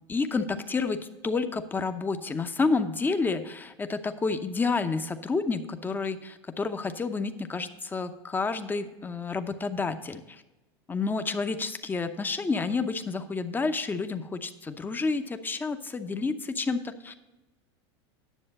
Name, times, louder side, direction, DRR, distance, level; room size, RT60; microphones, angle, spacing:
voice 1, 0.1-10.4 10.9-17.3, left 4 dB, 15° left, 8 dB, 0.7 m, -30 dB
10.0 x 7.0 x 5.3 m, 1.1 s
hypercardioid pair, 115°, 14 cm